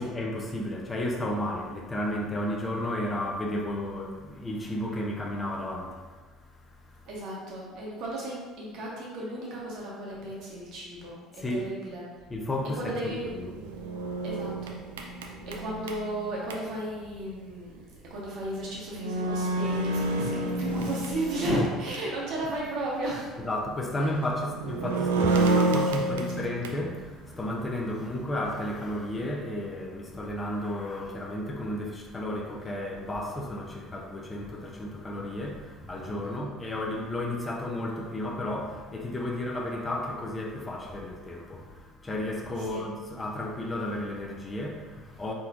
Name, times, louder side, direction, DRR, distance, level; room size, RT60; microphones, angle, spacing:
voice 1, 0.0-7.1 11.4-11.7 12.3-13.6 23.4-45.3, left 1 dB, 20° left, 0 dB, 0.6 m, -33 dB
voice 2, 7.1-12.0 12.7-13.3 14.2-14.8 15.6-17.8 18.1-23.3 36.2-36.5 42.6-42.8, right 1 dB, 55° right, -4 dB, 1.2 m, -34 dB
sound 1, 13.3-16.6 18.4-18.5 18.9-22.2 22.6-22.7 24.4-26.9, right 2 dB, 70° right, 0.4 m, -29 dB
4.3 x 3.8 x 2.5 m, 1.4 s
figure-of-eight pair, 60°, 0 cm